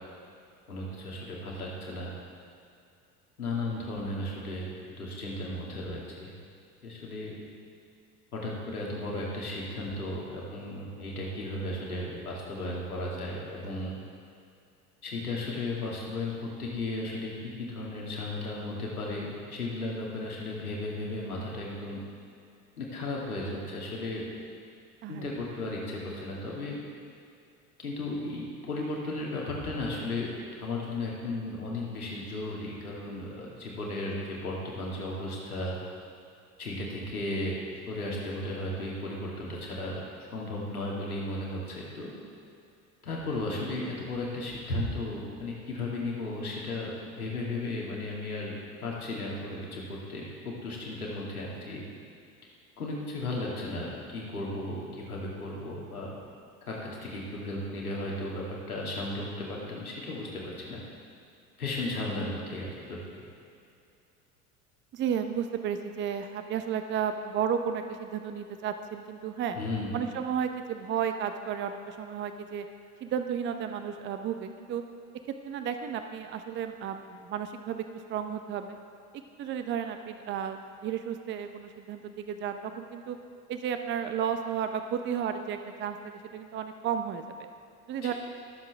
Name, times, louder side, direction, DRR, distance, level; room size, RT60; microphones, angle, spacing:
voice 1, 0.7-2.1 3.4-4.7 5.0-6.3 6.8-7.3 8.3-14.0 15.0-17.3 17.6-22.0 22.8-24.2 25.1-26.8 27.8-30.3 30.6-35.8 36.6-40.0 40.3-42.1 43.0-48.5 48.8-51.8 52.8-56.1 56.7-60.8 61.6-63.2 69.6-69.9 88.0-88.1, left 2 dB, 80° left, -4 dB, 2.4 m, -35 dB
voice 2, 64.9-69.6 69.9-72.7 73.0-74.8 75.4-77.8 78.1-78.8 79.4-83.2 83.5-87.2 87.9-88.1, right 8 dB, 25° right, 7 dB, 0.7 m, -33 dB
22.5 x 7.6 x 3.5 m, 2.6 s
figure-of-eight pair, 70°, 44 cm